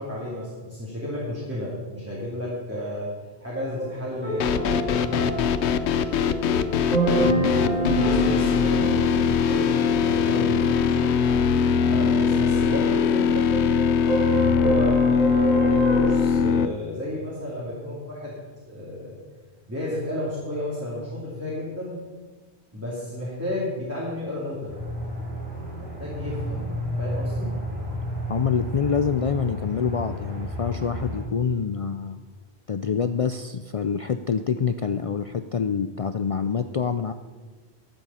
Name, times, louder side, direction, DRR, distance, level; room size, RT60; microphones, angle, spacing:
voice 1, 0.0-3.1 3.4-6.5 7.0-11.1 11.9-13.5 14.3-19.2 19.7-21.9 22.7-24.7 25.8-26.7 27.0-27.5, left 1 dB, 15° right, -7 dB, 2.6 m, -32 dB
sound 1, 3.8-16.0, right 1 dB, 40° right, 4.5 m, -29 dB
sound 2, 4.4-16.7, left 6 dB, 85° left, 0.9 m, -21 dB
Aircraft, 24.7-31.2, equal, 70° right, 3.8 m, -31 dB
voice 2, 28.3-32.2 32.7-37.1, left 6 dB, 65° left, 9 dB, 0.3 m, -26 dB
13.5 x 7.9 x 5.6 m, 1.3 s
omnidirectional pair, 1.1 m